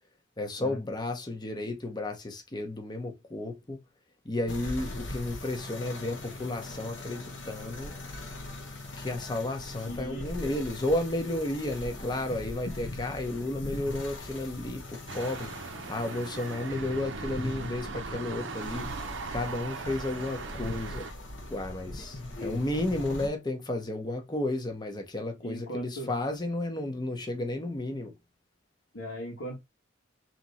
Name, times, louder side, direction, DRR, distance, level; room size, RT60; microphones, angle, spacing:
voice 1, 0.4-3.8 4.2-8.0 9.0-15.5 15.9-21.1 21.5-28.1, left 1 dB, 20° left, 0.8 m, -33 dB
sound 1, 4.5-23.3, left 1 dB, 65° left, 1.1 m, -41 dB
voice 2, 9.8-10.6 22.3-22.6 25.4-26.1 28.9-29.6, equal, 85° left, 1.4 m, -39 dB
sound 2, 15.1-21.1, right 4 dB, 65° right, 0.6 m, -39 dB
3.4 x 3.0 x 4.1 m
head